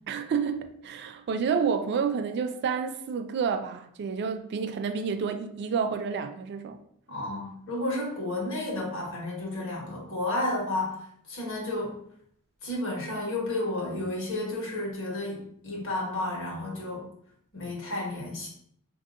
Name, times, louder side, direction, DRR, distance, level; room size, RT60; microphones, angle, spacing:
voice 1, 0.1-6.8, right 6 dB, 50° right, 0.3 m, -29 dB
voice 2, 7.1-11.0 11.3-12.0 12.6-17.1 17.5-18.5, left 2 dB, 60° left, 1.3 m, -32 dB
4.0 x 2.7 x 2.5 m
head